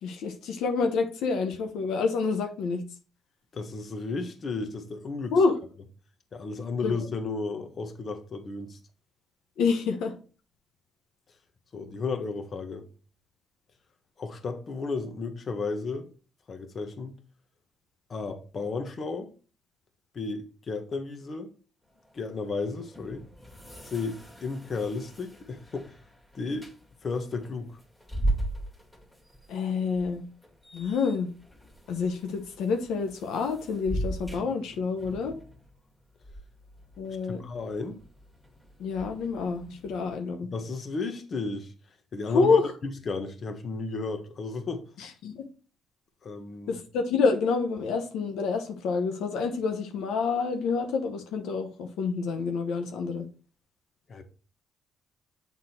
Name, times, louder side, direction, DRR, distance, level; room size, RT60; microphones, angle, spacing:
voice 1, 0.0-2.8 5.3-5.6 6.8-6.9 9.6-10.1 29.5-30.2 30.7-31.3 31.9-35.4 37.0-37.4 38.8-40.5 42.3-42.6 45.0-45.4 46.7-53.3, left 4 dB, 85° left, 1.0 m, -27 dB
voice 2, 3.5-5.3 6.3-8.8 11.7-12.8 14.2-16.1 16.5-17.1 18.1-19.3 20.1-21.5 22.1-23.2 23.8-25.9 26.3-26.7 27.0-27.8 37.1-38.0 40.5-41.7 42.1-44.8 46.2-46.8 54.1-54.2, left 4 dB, 45° left, 1.3 m, -33 dB
sound 1, 21.9-40.2, right 1 dB, 5° left, 2.1 m, -39 dB
8.1 x 3.7 x 4.4 m
cardioid pair, 90°, 0 cm